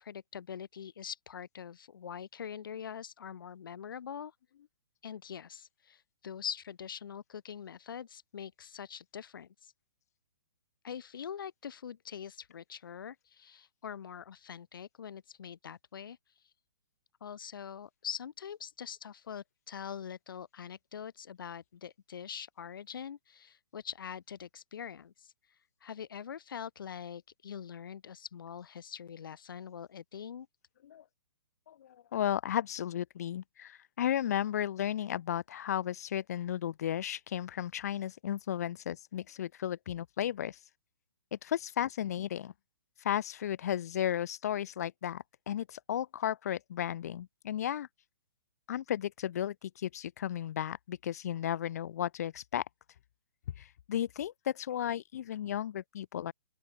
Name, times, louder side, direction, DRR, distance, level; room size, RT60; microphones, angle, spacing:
voice 1, 0.0-4.3 5.0-9.7 10.8-16.2 17.2-25.3 25.8-30.5, left 8 dB, 70° left, 1.2 m, -43 dB
voice 2, 31.7-40.6 41.3-42.5 43.0-47.9 48.7-52.6 53.6-56.3, left 10 dB, 45° left, 0.6 m, -34 dB
open air
hypercardioid pair, 170°, 12 cm